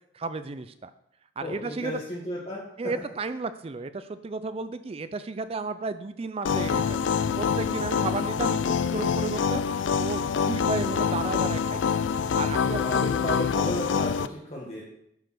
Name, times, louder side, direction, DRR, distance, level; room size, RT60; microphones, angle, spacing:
voice 1, 0.1-0.9 1.4-2.0 2.8-11.8 12.4-13.1, right 3 dB, 30° right, 12 dB, 0.4 m, -33 dB
voice 2, 1.4-2.6 12.6-14.8, left 1 dB, 35° left, -5 dB, 1.7 m, -34 dB
sound 1, 6.4-14.3, left 6 dB, 75° left, 0.4 m, -26 dB
10.5 x 5.1 x 6.1 m, 0.78 s
head